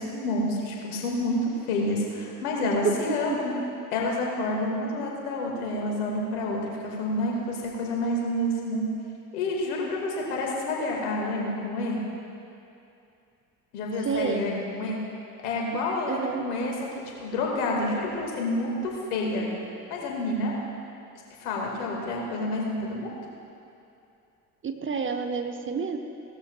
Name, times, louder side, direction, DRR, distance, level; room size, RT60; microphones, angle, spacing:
voice 1, 0.0-3.5 3.9-8.9 9.3-12.0 13.7-15.0 15.4-19.5 19.9-20.5 21.4-23.1, left 1 dB, 70° left, -1 dB, 2.3 m, -29 dB
voice 2, 14.0-14.5 16.1-16.4 24.6-26.0, right 6 dB, 25° right, 6 dB, 0.8 m, -29 dB
17.5 x 12.5 x 2.4 m, 2.7 s
figure-of-eight pair, 60°, 46 cm